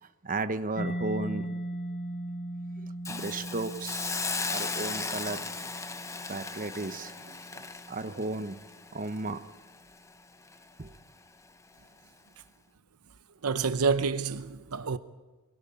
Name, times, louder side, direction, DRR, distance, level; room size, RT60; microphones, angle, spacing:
voice 1, 0.2-1.5 2.8-4.1 4.5-5.4 6.3-8.6 8.9-9.4 10.8-10.9, right 2 dB, 40° right, 1.0 m, -35 dB
Mallet percussion, 0.8-8.3, right 1 dB, 50° left, 1.6 m, -39 dB
Hiss, 3.0-10.1 10.5-10.6, left 4 dB, 15° left, 0.8 m, -37 dB
voice 2, 13.4-15.0, right 5 dB, 75° right, 0.8 m, -28 dB
24.0 x 17.5 x 8.6 m
head